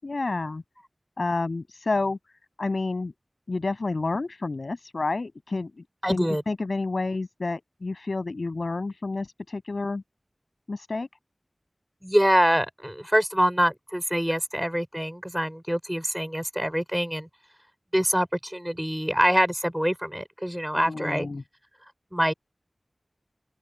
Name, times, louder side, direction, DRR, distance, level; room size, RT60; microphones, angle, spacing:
voice 1, 0.0-0.6 1.2-2.2 2.6-3.1 3.5-5.7 6.1-10.0 10.7-11.1 20.7-21.4, left 3 dB, 80° left, 7.1 m, -29 dB
voice 2, 6.0-6.4 12.0-17.3 17.9-21.3 22.1-22.3, equal, 5° right, 3.7 m, -25 dB
open air
wide cardioid pair, 50°, 0 cm